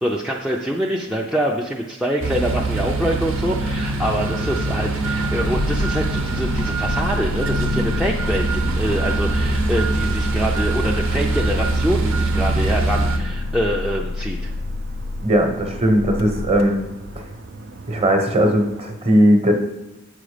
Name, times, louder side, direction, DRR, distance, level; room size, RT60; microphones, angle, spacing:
voice 1, 0.0-14.5, equal, 5° right, -2 dB, 0.4 m, -25 dB
sound 1, 2.2-13.2, right 2 dB, 75° right, 0.9 m, -23 dB
Engine starting, 3.2-17.3, left 3 dB, 75° left, 0.6 m, -30 dB
sound 2, 4.0-18.8, right 3 dB, 55° right, 0.5 m, -36 dB
voice 2, 15.2-16.8 17.2-17.3 17.9-19.5, equal, 30° right, 4 dB, 1.0 m, -18 dB
7.7 x 5.2 x 5.0 m, 0.96 s
head